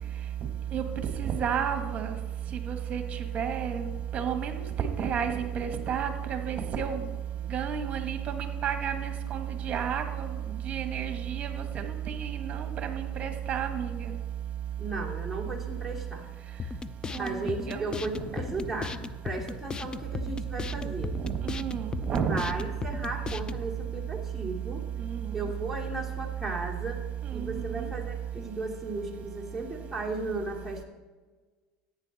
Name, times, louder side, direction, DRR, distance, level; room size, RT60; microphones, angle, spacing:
voice 1, 1.2-2.1 2.7-3.0 3.3-3.8 4.1-4.5 4.8-7.0 7.5-10.3 10.7-11.5 11.7-14.1 17.1-17.9 21.2-22.4 27.4-27.5 27.8-27.9, right 8 dB, 35° right, 6 dB, 1.6 m, -31 dB
voice 2, 14.8-16.3 17.2-19.0 19.2-21.2 22.3-24.8 25.3-27.0 27.3-30.8, right 2 dB, ahead, -3 dB, 2.8 m, -35 dB
sound 1, 16.6-23.6, left 5 dB, 20° left, 0.5 m, -37 dB
15.0 x 9.0 x 4.2 m, 1.4 s
supercardioid pair, 110°, 4 cm